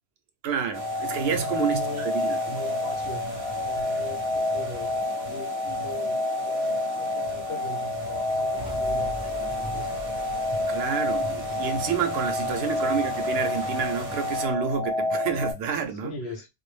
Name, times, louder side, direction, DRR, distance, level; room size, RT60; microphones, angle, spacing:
voice 1, 0.4-2.6 10.7-16.1, right 7 dB, 80° right, 0.8 m, -29 dB
sound 1, 0.7-15.5, left 2 dB, 40° left, 0.6 m, -29 dB
sound 2, 0.7-14.5, right 2 dB, 50° right, 0.8 m, -42 dB
voice 2, 1.2-9.9 12.1-12.7 16.0-16.5, left 1 dB, 90° left, 0.9 m, -40 dB
sound 3, 8.5-14.3, right 1 dB, 5° right, 0.5 m, -42 dB
2.2 x 2.0 x 3.1 m
omnidirectional pair, 1.1 m